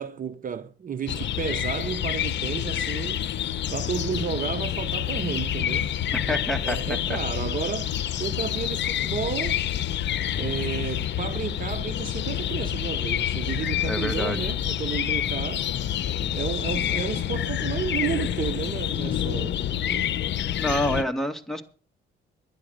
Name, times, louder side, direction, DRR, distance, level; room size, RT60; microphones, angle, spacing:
voice 1, 0.0-3.3 3.7-6.0 6.2-7.9 8.2-9.6 10.3-15.7 16.3-19.6 19.9-20.1, right 7 dB, 45° right, 0.8 m, -32 dB
sound 1, 1.1-21.0, left 11 dB, 65° left, 0.8 m, -28 dB
sound 2, 1.2-18.5, left 3 dB, 35° left, 1.6 m, -45 dB
voice 2, 6.1-7.2 13.8-14.5 20.6-21.6, equal, ahead, 2.1 m, -28 dB
11.0 x 10.5 x 6.5 m
cardioid pair, 90°, 20 cm